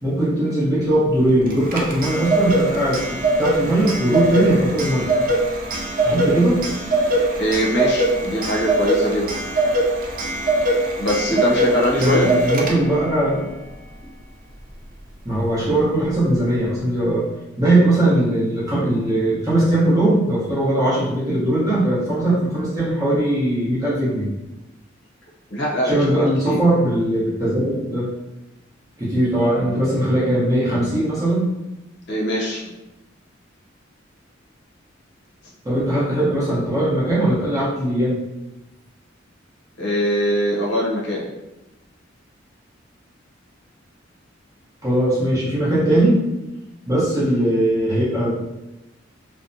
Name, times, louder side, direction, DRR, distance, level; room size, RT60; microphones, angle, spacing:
voice 1, 0.0-5.1 6.0-6.6 12.0-13.4 15.2-17.3 17.6-24.3 25.8-28.1 29.0-31.5 35.6-38.2 44.8-46.2 46.9-48.3, right 1 dB, 20° right, -8 dB, 0.9 m, -19 dB
Clock, 1.5-13.1, right 2 dB, 45° right, 0.4 m, -22 dB
voice 2, 7.4-9.3 11.0-12.3 25.5-25.9 26.4-26.6 32.1-32.7 39.8-41.3, equal, 60° left, -4 dB, 0.6 m, -22 dB
2.6 x 2.1 x 2.6 m, 0.98 s
head